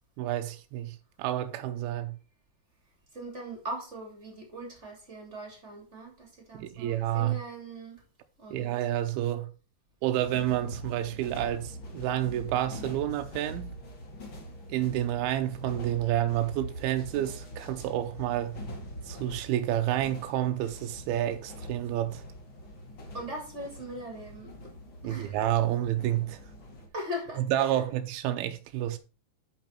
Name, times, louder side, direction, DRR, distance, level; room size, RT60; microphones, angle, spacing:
voice 1, 0.2-2.2 6.5-7.4 8.5-9.5 10.0-13.7 14.7-18.6 19.1-22.2 25.0-26.4 27.5-29.0, right 12 dB, 85° right, 2.5 m, -29 dB
voice 2, 3.1-8.0 8.4-8.8 23.1-24.7 25.0-25.4 26.9-27.8, equal, 20° right, 2.6 m, -40 dB
sound 1, 10.2-26.9, equal, 40° left, 2.2 m, -44 dB
9.1 x 5.9 x 4.4 m
omnidirectional pair, 4.5 m